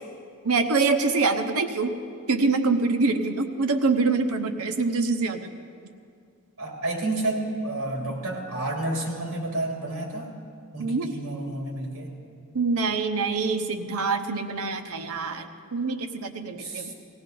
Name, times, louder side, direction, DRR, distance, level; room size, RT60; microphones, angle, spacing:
voice 1, 0.4-1.9 2.3-5.5 10.8-11.1 12.5-15.4 15.7-16.9, right 4 dB, 80° right, 6 dB, 1.0 m, -25 dB
voice 2, 6.6-10.3 10.7-12.1 16.6-16.9, right 2 dB, 65° right, -1 dB, 2.9 m, -30 dB
19.5 x 16.0 x 3.9 m, 2.3 s
head